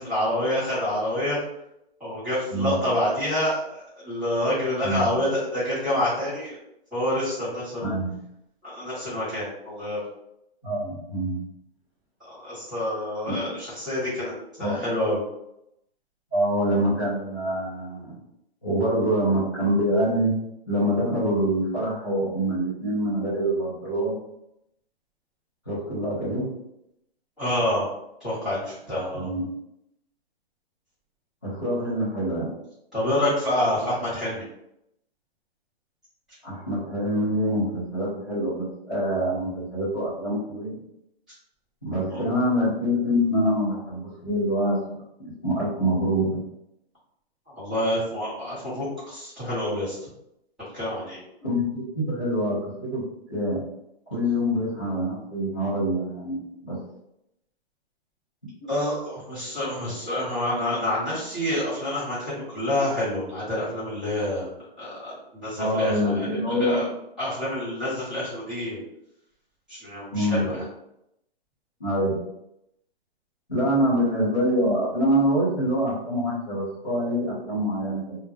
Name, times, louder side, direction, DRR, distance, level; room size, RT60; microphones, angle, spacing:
voice 1, 0.0-1.4 2.0-6.6 6.9-7.9 8.6-10.0 12.2-15.2 27.4-27.9 28.2-29.3 32.9-34.4 42.1-42.2 47.6-50.1 50.7-51.2 58.7-64.5 64.8-66.9 67.2-68.8 69.7-70.6, left 1 dB, ahead, -16 dB, 0.9 m, -27 dB
voice 2, 7.8-8.1 10.6-11.4 13.3-13.5 14.6-14.8 16.3-18.2 18.6-20.3 20.7-24.1 25.7-26.5 29.1-29.5 31.4-32.5 36.4-40.7 41.8-44.8 45.2-46.4 51.4-53.0 53.3-53.6 54.1-56.8 58.6-58.7 65.6-66.9 70.1-70.4 71.8-72.2 73.5-78.2, equal, 20° left, -12 dB, 0.4 m, -25 dB
2.1 x 2.0 x 3.1 m, 0.81 s
hypercardioid pair, 170°, 32 cm